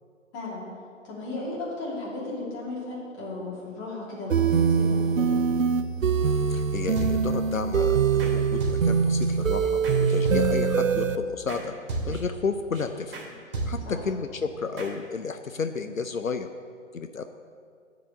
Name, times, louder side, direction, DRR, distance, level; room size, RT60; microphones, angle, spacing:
voice 1, 0.3-0.7 1.0-5.4 13.8-14.0, left 2 dB, 20° left, -6 dB, 2.8 m, -35 dB
sound 1, 4.3-11.2, right 6 dB, 80° right, 0.7 m, -23 dB
voice 2, 6.5-11.7 12.1-13.2 13.7-16.5 16.9-17.2, left 5 dB, 85° left, 8 dB, 0.7 m, -32 dB
sound 2, 7.0-7.5 8.2-8.3 8.6-9.3 9.8-10.8 11.5-11.6 11.9-12.4 12.7-12.8 13.1-13.3 13.5-14.1 14.8-14.9, right 3 dB, 45° right, 3.0 m, -33 dB
10.0 x 5.0 x 7.9 m, 2.2 s
figure-of-eight pair, 135°, 39 cm